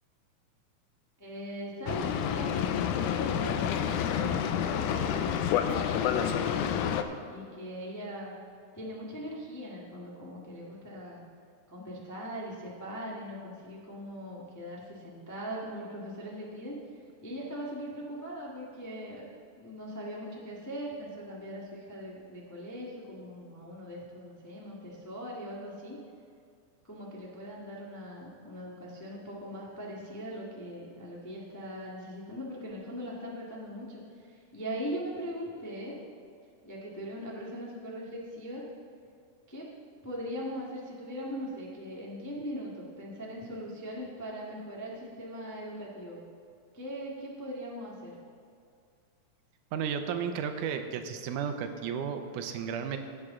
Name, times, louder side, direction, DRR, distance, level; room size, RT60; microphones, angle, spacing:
voice 1, 1.2-6.9 7.3-8.3 8.7-11.2 11.7-16.8 17.2-19.2 19.6-26.0 26.8-36.0 36.6-38.7 39.5-39.7 40.0-46.3 46.7-48.2, equal, 20° left, -5 dB, 0.4 m, -40 dB
Boat Water vehicle, 1.9-7.0, left 9 dB, 80° left, 2.0 m, -29 dB
voice 2, 49.7-53.0, right 7 dB, 85° right, 7 dB, 2.2 m, -33 dB
16.5 x 8.0 x 3.7 m, 2.3 s
omnidirectional pair, 3.6 m